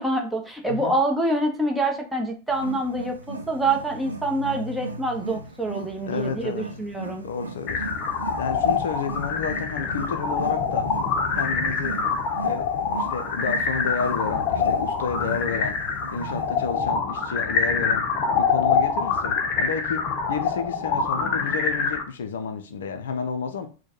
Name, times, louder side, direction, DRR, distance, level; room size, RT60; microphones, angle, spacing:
voice 1, 0.0-7.3, right 1 dB, 5° right, 0.9 m, -26 dB
Wild animals, 2.5-16.8, right 3 dB, 80° right, 0.5 m, -37 dB
voice 2, 6.0-6.7 7.2-7.9 8.4-10.9 11.4-12.0 12.4-15.8 16.1-18.1 18.4-23.7, left 6 dB, 60° left, 0.5 m, -31 dB
sound 1, 7.7-22.0, left 5 dB, 35° left, 0.8 m, -25 dB
4.4 x 2.2 x 4.3 m
figure-of-eight pair, 90°, 0 cm